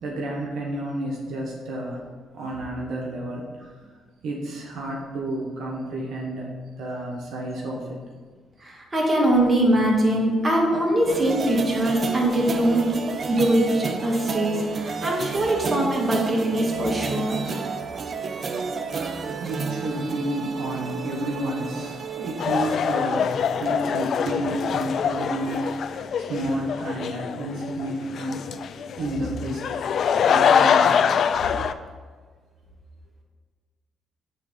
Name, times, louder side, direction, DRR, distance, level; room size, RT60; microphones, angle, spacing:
voice 1, 0.0-2.0 2.3-3.7 4.2-6.5 6.8-8.0 18.9-23.3 23.6-25.8 26.2-28.5 29.0-29.8 30.3-31.0, right 1 dB, 80° right, -1 dB, 1.1 m, -30 dB
voice 2, 8.6-12.9 13.3-17.4, right 1 dB, 25° right, -2 dB, 1.9 m, -22 dB
sound 1, 11.1-25.8, right 4 dB, 45° right, 0.5 m, -32 dB
sound 2, 22.4-31.7, left 7 dB, 60° left, 0.3 m, -24 dB
8.7 x 3.6 x 5.2 m, 1.5 s
cardioid pair, 90°, 0 cm